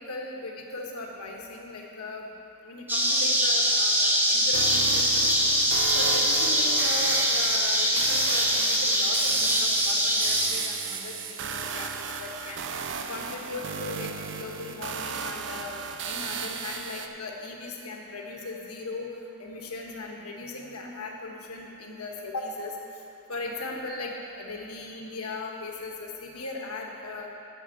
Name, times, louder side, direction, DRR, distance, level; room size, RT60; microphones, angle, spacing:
voice 1, 0.0-2.3 2.6-5.5 5.9-12.6 13.1-14.1 14.3-19.1 19.4-22.8 23.3-27.3, left 2 dB, 80° left, 0 dB, 1.4 m, -38 dB
sound 1, 2.9-10.5, equal, 10° right, 1.1 m, -23 dB
sound 2, 4.5-17.1, right 6 dB, 55° right, 0.6 m, -35 dB
8.3 x 6.8 x 8.5 m, 2.7 s
head